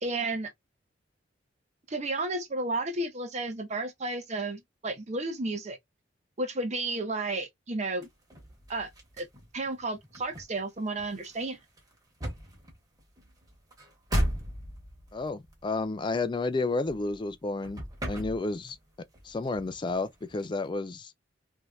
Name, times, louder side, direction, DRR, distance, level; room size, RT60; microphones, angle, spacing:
voice 1, 0.0-0.5 1.9-5.8 6.4-8.1 8.7-8.9 9.2-9.3 9.5-11.6, right 2 dB, 35° right, 0.7 m, -32 dB
sound 1, 8.0-17.3 17.6-18.9 19.1-20.7, equal, 20° right, 1.2 m, -37 dB
voice 2, 15.1-18.8 19.2-21.1, left 3 dB, 25° left, 0.4 m, -31 dB
3.1 x 2.7 x 2.3 m
head